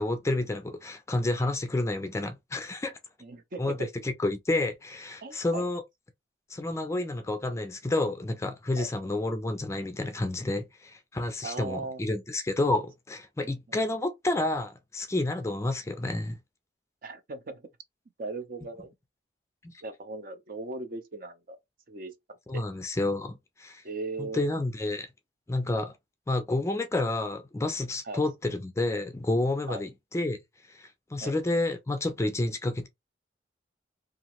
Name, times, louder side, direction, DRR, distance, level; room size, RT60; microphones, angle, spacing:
voice 1, 0.0-2.9 3.6-5.8 6.5-16.4 19.6-19.7 22.5-23.8 24.2-25.1 25.5-26.0 26.3-30.4 30.7-32.9, left 2 dB, 15° left, 0.3 m, -30 dB
voice 2, 3.2-3.9 5.2-5.7 8.8-8.9 11.4-12.0 13.4-13.8 17.0-17.6 18.2-18.9 19.8-21.6 21.9-22.6 23.8-24.4 28.0-28.2 29.7-29.8 31.2-31.4, right 3 dB, 55° right, 0.6 m, -38 dB
2.8 x 2.4 x 2.9 m
head